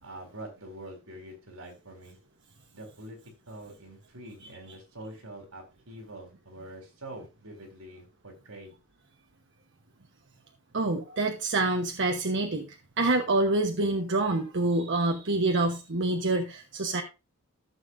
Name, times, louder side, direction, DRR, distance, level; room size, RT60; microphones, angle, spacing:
voice 1, 0.0-2.2 2.7-3.2 3.5-8.7, right 1 dB, 80° right, 2 dB, 3.9 m, -45 dB
voice 2, 10.7-17.0, right 2 dB, 55° right, 4 dB, 1.0 m, -27 dB
14.5 x 7.1 x 2.6 m, 0.28 s
head